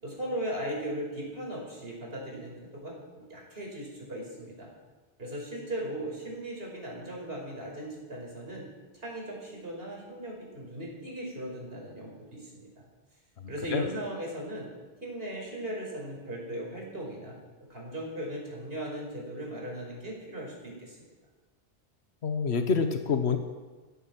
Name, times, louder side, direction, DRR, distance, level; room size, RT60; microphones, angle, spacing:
voice 1, 0.0-4.7 5.2-8.6 8.9-12.7 13.5-14.7 15.0-17.4 17.7-21.0, right 1 dB, 65° right, -2 dB, 5.4 m, -38 dB
voice 2, 22.2-23.4, left 5 dB, 85° left, 7 dB, 1.3 m, -26 dB
15.5 x 14.0 x 6.1 m, 1.3 s
omnidirectional pair, 1.1 m